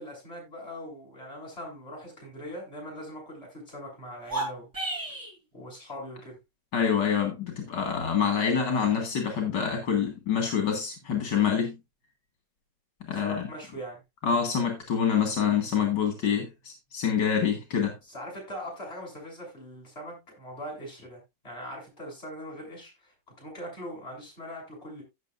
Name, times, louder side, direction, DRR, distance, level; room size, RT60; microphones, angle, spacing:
voice 1, 0.0-4.7 5.5-6.4 13.1-14.0 18.0-25.0, equal, 35° left, 7.5 m, -41 dB
sound 1, 4.2-5.3, right 2 dB, 10° right, 4.6 m, -32 dB
voice 2, 6.7-11.8 13.1-13.4 14.2-18.0, left 7 dB, 85° left, 2.5 m, -26 dB
15.5 x 6.5 x 2.5 m
omnidirectional pair, 1.9 m